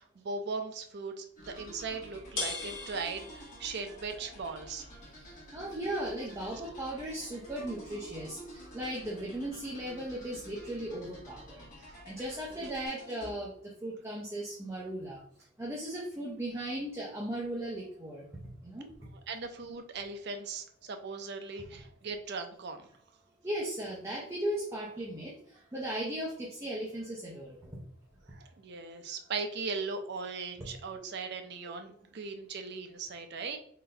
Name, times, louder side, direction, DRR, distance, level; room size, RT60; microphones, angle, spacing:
voice 1, 0.0-4.9 11.8-12.0 12.6-12.8 19.3-22.8 28.3-33.6, right 4 dB, 55° right, 6 dB, 0.5 m, -39 dB
sound 1, 1.4-12.9, left 3 dB, 60° left, 0.9 m, -47 dB
sound 2, 1.4-13.3, right 1 dB, 40° left, 1.3 m, -51 dB
voice 2, 5.0-11.6 12.0-15.2 15.6-18.2 18.6-18.9 23.4-27.8 30.9-31.0, right 1 dB, 15° right, -4 dB, 0.6 m, -37 dB
3.9 x 2.6 x 3.3 m, 0.63 s
head